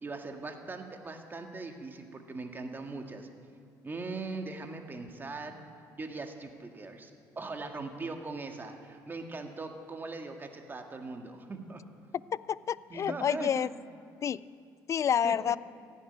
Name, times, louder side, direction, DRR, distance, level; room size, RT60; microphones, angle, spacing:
voice 1, 0.0-3.3 3.8-5.6 5.9-7.1 7.4-11.8 12.9-13.7 15.2-15.3, right 3 dB, 25° right, 4 dB, 1.8 m, -40 dB
voice 2, 12.3-13.7 14.2-14.5 14.9-15.6, left 8 dB, 40° left, 20 dB, 0.3 m, -29 dB
15.5 x 7.4 x 9.9 m, 2.4 s
supercardioid pair, 85°, 8 cm